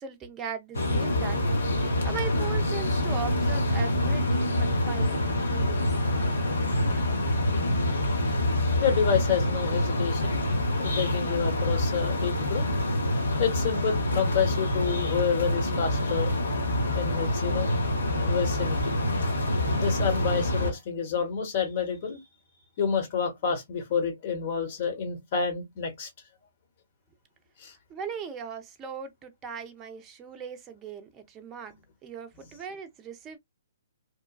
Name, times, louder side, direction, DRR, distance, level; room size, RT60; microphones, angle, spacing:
voice 1, 0.0-1.4 2.0-5.2 5.5-5.9 27.9-31.7 32.0-33.4, right 6 dB, 20° right, 0.6 m, -38 dB
sound 1, 0.7-20.7, left 1 dB, 75° left, 0.9 m, -26 dB
voice 2, 8.8-10.4 10.8-12.7 13.4-16.3 16.9-17.8 18.2-19.0 19.7-22.2 22.8-26.1 27.6-27.7, left 7 dB, 45° left, 1.1 m, -29 dB
3.0 x 2.2 x 2.2 m
figure-of-eight pair, 125°, 0 cm